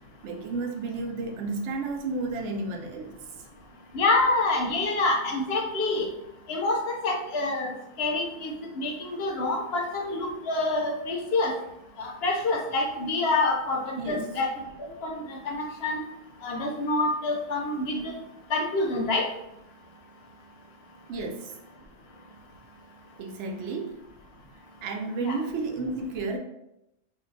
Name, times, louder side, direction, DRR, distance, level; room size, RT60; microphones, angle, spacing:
voice 1, 0.2-3.2 14.0-14.3 21.1-21.5 23.2-24.0 24.8-26.4, right 3 dB, 85° right, 3 dB, 0.9 m, -32 dB
voice 2, 3.9-6.1 6.5-11.5 12.0-14.5 14.8-16.0 16.4-18.1 18.5-19.3 25.2-25.4, left 2 dB, 65° left, 2 dB, 0.8 m, -27 dB
2.4 x 2.2 x 3.9 m, 0.85 s
omnidirectional pair, 1.2 m